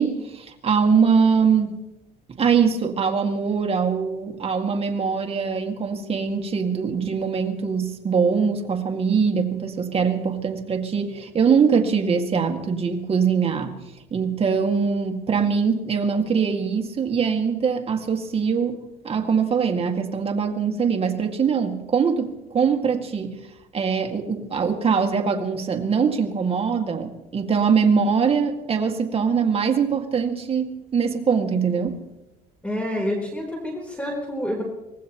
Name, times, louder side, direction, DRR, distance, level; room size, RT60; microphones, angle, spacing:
voice 1, 0.0-1.8 2.4-13.8 14.1-23.4 23.7-32.0, right 6 dB, 35° right, 4 dB, 1.9 m, -22 dB
voice 2, 32.6-34.6, left 1 dB, 5° left, 0 dB, 3.8 m, -28 dB
24.5 x 19.0 x 3.0 m, 0.94 s
cardioid pair, 110°, 17 cm